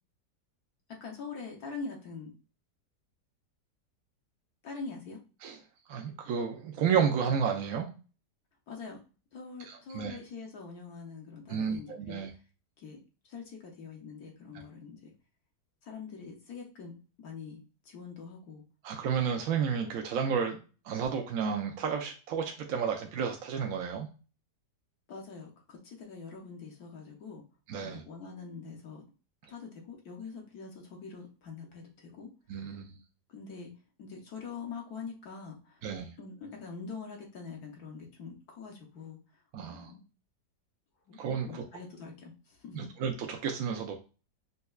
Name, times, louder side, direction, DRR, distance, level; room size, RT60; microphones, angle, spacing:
voice 1, 1.0-2.4 4.6-5.2 8.7-9.0 9.3-12.2 12.8-13.0 13.2-15.1 15.8-18.6 25.1-27.4 27.8-29.0 29.5-32.8 33.3-33.7 34.0-35.9 36.2-39.4 39.7-40.0 41.1-41.2 41.5-42.9, left 5 dB, 65° left, 0 dB, 1.2 m, -44 dB
voice 2, 5.9-7.9 9.7-10.2 11.5-12.3 18.8-20.6 20.8-24.1 27.7-28.0 32.5-33.0 35.8-36.1 39.5-39.9 41.2-41.6 42.7-44.0, right 7 dB, 70° right, 2 dB, 0.9 m, -31 dB
5.3 x 2.2 x 2.3 m, 0.35 s
omnidirectional pair, 1.8 m